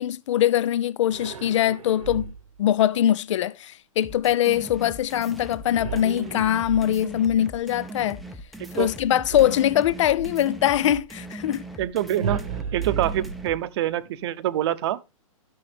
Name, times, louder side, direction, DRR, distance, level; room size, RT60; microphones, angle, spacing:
voice 1, 0.0-2.3 2.6-8.2 8.7-11.7, left 11 dB, 60° left, 0.5 m, -22 dB
sound 1, 1.1-2.6 5.8-7.3 9.3-10.5 12.2-13.9, right 7 dB, 75° right, 1.1 m, -34 dB
sound 2, 4.0-13.6, right 1 dB, ahead, 0.5 m, -40 dB
voice 2, 11.8-12.4 12.7-15.0, right 12 dB, 50° right, 0.7 m, -25 dB
13.0 x 6.3 x 3.4 m
hypercardioid pair, 145°, 18 cm